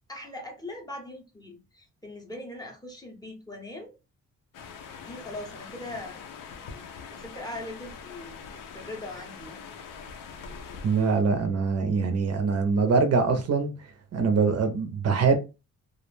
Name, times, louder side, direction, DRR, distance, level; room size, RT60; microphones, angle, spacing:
voice 1, 0.1-4.0 5.0-6.3 7.1-8.3 8.7-9.6, left 1 dB, 10° left, 0.5 m, -40 dB
sound 1, 4.5-11.2, left 6 dB, 85° left, 0.6 m, -43 dB
voice 2, 10.8-13.7 14.1-15.4, right 4 dB, 50° right, 0.5 m, -23 dB
2.4 x 2.0 x 3.0 m
wide cardioid pair, 140°, 32 cm